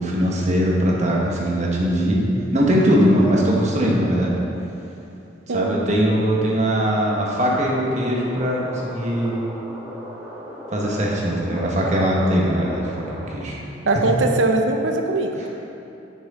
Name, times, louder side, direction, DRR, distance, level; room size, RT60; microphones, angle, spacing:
voice 1, 0.0-2.2 2.5-4.3 5.5-9.4 10.7-12.9 13.3-13.6, equal, 40° right, -4 dB, 1.3 m, -20 dB
sound 1, 7.8-13.4, left 1 dB, 10° right, 1.4 m, -37 dB
voice 2, 13.9-15.5, right 2 dB, 80° right, 4 dB, 0.7 m, -21 dB
10.0 x 6.2 x 3.7 m, 2.8 s
head